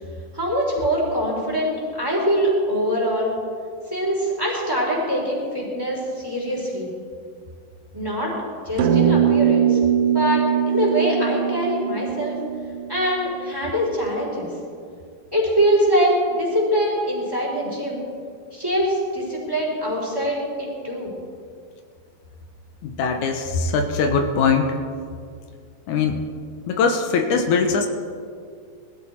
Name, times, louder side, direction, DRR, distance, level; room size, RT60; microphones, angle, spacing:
voice 1, 0.3-3.3 3.9-6.9 7.9-8.3 8.6-9.8 10.1-12.4 12.9-14.5 15.3-18.0 18.5-21.1, equal, 5° right, -4 dB, 4.0 m, -23 dB
sound 1, 8.8-13.4, right 8 dB, 85° right, 1.2 m, -21 dB
voice 2, 22.8-24.8 25.9-26.2 26.7-27.9, left 5 dB, 80° left, 5 dB, 2.4 m, -21 dB
20.5 x 14.5 x 4.5 m, 2.2 s
omnidirectional pair, 3.5 m